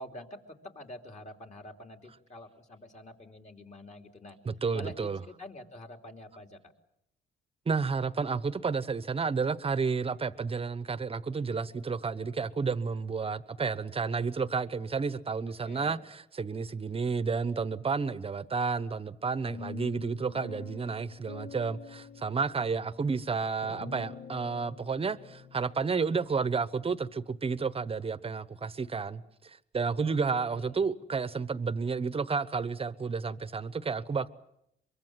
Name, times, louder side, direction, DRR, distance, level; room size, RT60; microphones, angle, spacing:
voice 1, 0.0-4.4 4.7-6.7 15.6-16.0 30.0-30.8, left 1 dB, 35° left, 3.2 m, -47 dB
voice 2, 4.5-5.2 7.7-34.3, right 5 dB, 30° right, 1.0 m, -31 dB
sound 1, 19.4-26.5, left 6 dB, 75° left, 4.4 m, -47 dB
23.5 x 23.0 x 7.6 m
cardioid pair, 90°, 20 cm